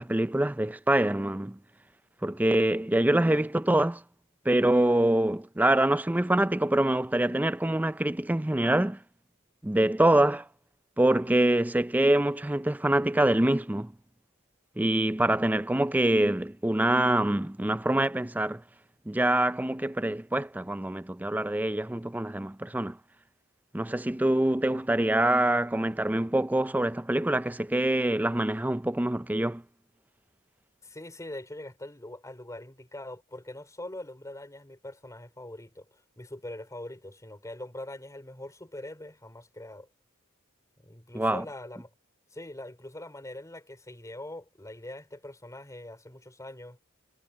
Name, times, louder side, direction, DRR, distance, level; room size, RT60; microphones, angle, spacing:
voice 1, 0.0-1.6 2.2-4.0 4.5-9.0 9.6-10.5 11.0-13.9 14.8-18.6 19.1-23.0 23.7-29.6 41.1-41.4, right 1 dB, 10° right, 0.4 m, -25 dB
voice 2, 30.8-39.9 40.8-41.9 42.3-46.8, left 1 dB, 15° left, 3.9 m, -42 dB
head